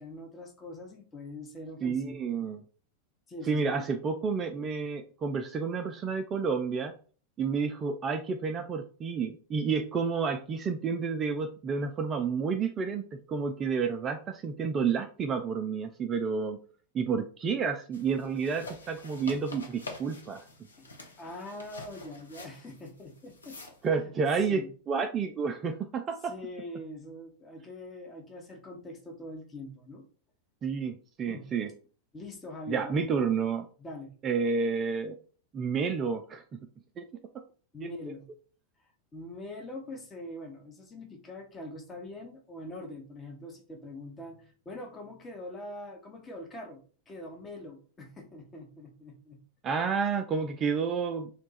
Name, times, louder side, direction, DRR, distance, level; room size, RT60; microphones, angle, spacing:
voice 1, 0.0-2.3 3.3-3.9 20.8-20.9 21.2-23.6 24.0-24.7 26.2-30.1 31.2-31.5 32.1-33.1 33.8-34.1 37.7-38.3 38.8-49.4, left 1 dB, 20° left, 5 dB, 0.8 m, -43 dB
voice 2, 1.8-2.6 3.5-6.9 7.4-16.6 16.9-20.5 23.8-26.3 30.6-31.7 32.7-33.7 34.2-35.2 35.5-36.4 37.0-37.1 49.6-51.3, right 5 dB, 25° right, 7 dB, 0.3 m, -30 dB
sound 1, 17.9-23.9, left 2 dB, 75° left, 0.7 m, -47 dB
2.9 x 2.3 x 4.0 m, 0.40 s
figure-of-eight pair, 90°, 0 cm